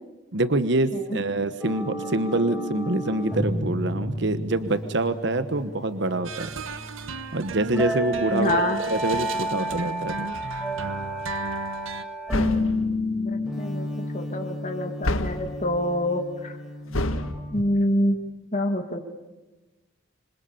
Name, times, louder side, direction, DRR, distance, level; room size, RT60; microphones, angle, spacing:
voice 1, 0.3-6.5 7.3-10.3, right 2 dB, 60° right, 11 dB, 1.1 m, -26 dB
sound 1, 1.6-17.6, left 1 dB, 5° right, 4.6 m, -31 dB
sound 2, 6.2-12.0, right 3 dB, 75° right, 1.4 m, -35 dB
voice 2, 8.3-8.8 13.1-13.9 14.1-16.6 17.5-18.2 18.5-19.1, left 1 dB, 35° left, 5 dB, 2.1 m, -26 dB
sound 3, 12.3-12.8 15.0-15.5 16.9-17.3, left 1 dB, 85° left, 1.8 m, -27 dB
26.5 x 26.0 x 7.1 m, 1.1 s
head